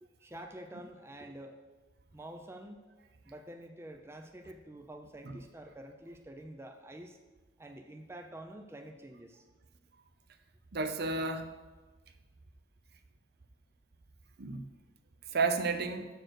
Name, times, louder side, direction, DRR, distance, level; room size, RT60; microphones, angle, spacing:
voice 1, 0.2-1.5 2.1-2.8 3.2-7.2 7.6-9.4, right 1 dB, 15° right, 4 dB, 0.5 m, -48 dB
voice 2, 10.7-11.5 14.4-14.6 15.3-16.1, right 4 dB, 55° right, 9 dB, 0.6 m, -32 dB
6.6 x 6.3 x 6.4 m, 1.2 s
head